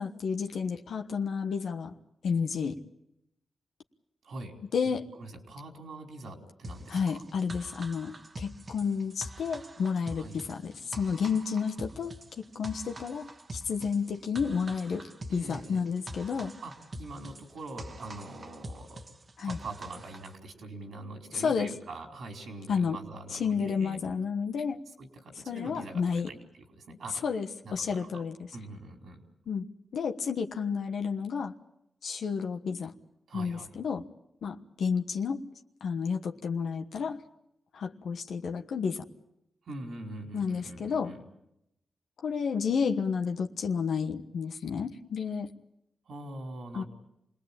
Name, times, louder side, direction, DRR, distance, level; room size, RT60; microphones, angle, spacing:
voice 1, 0.0-1.9 2.2-2.8 4.7-5.0 6.9-12.2 12.6-16.5 19.4-19.6 21.3-21.7 22.7-23.0 23.3-24.8 25.5-26.3 27.2-28.4 29.5-29.7 29.9-31.5 32.0-32.9 33.3-34.0 34.4-35.4 35.8-37.2 37.7-39.0 40.3-41.1 42.2-45.5 46.7-46.8, left 6 dB, 80° left, 4 dB, 1.2 m, -31 dB
voice 2, 4.2-4.6 4.9-7.3 10.1-10.4 15.3-15.8 16.6-16.7 17.0-19.0 19.4-24.0 25.0-27.2 27.6-28.2 28.5-29.2 33.3-33.7 39.6-41.2 46.1-46.9, right 2 dB, 80° right, 3 dB, 4.7 m, -43 dB
sound 1, 6.6-20.3, right 1 dB, 45° right, 1.7 m, -45 dB
27.5 x 19.0 x 8.8 m, 0.82 s
cardioid pair, 55°, 0 cm